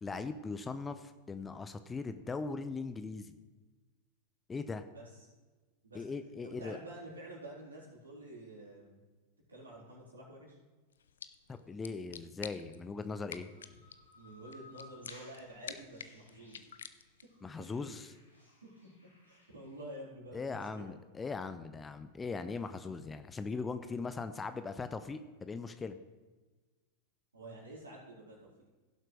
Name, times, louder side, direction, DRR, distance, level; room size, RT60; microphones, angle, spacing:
voice 1, 0.0-3.4 4.5-4.8 5.9-6.8 11.5-13.5 17.4-18.1 20.3-26.0, left 4 dB, 15° left, 10 dB, 0.6 m, -40 dB
voice 2, 4.9-5.3 5.8-6.0 6.4-9.0 9.5-10.6 14.1-16.7 17.8-17.9 19.2-20.9 27.3-28.7, right 1 dB, 75° right, -4 dB, 3.9 m, -49 dB
sound 1, 10.9-17.4, left 7 dB, 65° left, 0.5 m, -50 dB
sound 2, 13.5-19.8, left 1 dB, 80° left, 2.6 m, -60 dB
17.0 x 7.5 x 3.2 m, 1.3 s
figure-of-eight pair, 90°, 0 cm